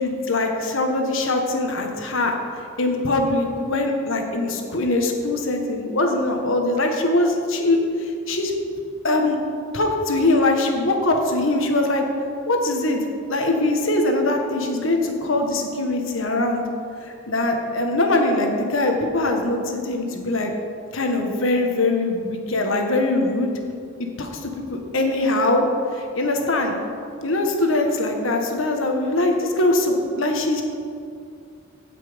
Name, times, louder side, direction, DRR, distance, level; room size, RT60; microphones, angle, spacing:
voice 1, 0.0-2.3 2.8-8.6 9.0-9.4 9.7-12.0 12.5-13.0 13.3-16.6 17.0-20.5 20.9-23.5 24.2-25.7 25.9-26.7 27.2-30.6, left 2 dB, 70° left, 3 dB, 1.4 m, -22 dB
16.0 x 5.8 x 5.2 m, 2.4 s
head